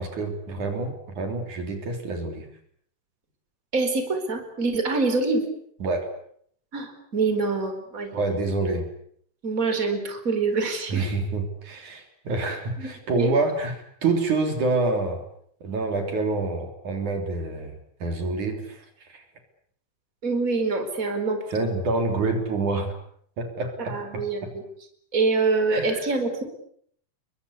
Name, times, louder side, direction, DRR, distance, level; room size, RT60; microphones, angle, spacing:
voice 1, 0.0-2.5 5.8-6.1 8.1-8.9 10.9-15.2 15.6-17.7 18.0-18.8 19.1-19.2 21.5-22.9 23.4-24.5 25.7-26.0, right 3 dB, 65° right, 5 dB, 4.8 m, -27 dB
voice 2, 3.7-5.4 6.7-8.2 9.4-11.1 12.8-12.9 13.1-13.3 20.2-21.7 23.8-24.6 25.1-26.4, right 3 dB, 25° right, 7 dB, 4.6 m, -25 dB
28.5 x 23.0 x 8.3 m, 0.66 s
omnidirectional pair, 3.8 m